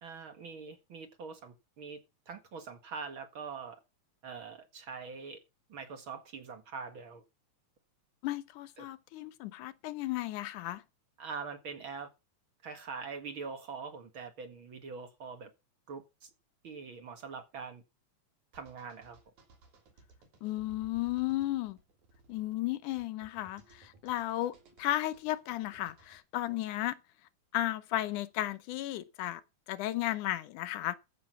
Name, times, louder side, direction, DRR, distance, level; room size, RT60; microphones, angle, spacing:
voice 1, 0.0-3.8 4.2-5.4 5.7-7.2 8.8-8.9 11.2-12.1 12.6-15.5 15.9-16.3 16.6-17.8 18.5-19.2, right 5 dB, 45° right, 2.3 m, -43 dB
voice 2, 8.2-10.8 20.4-21.8 22.3-27.0 27.5-29.4 29.7-31.0, left 15 dB, 90° left, 2.4 m, -34 dB
sound 1, 18.5-26.2, right 3 dB, 75° right, 4.6 m, -60 dB
14.0 x 6.5 x 6.0 m
omnidirectional pair, 3.4 m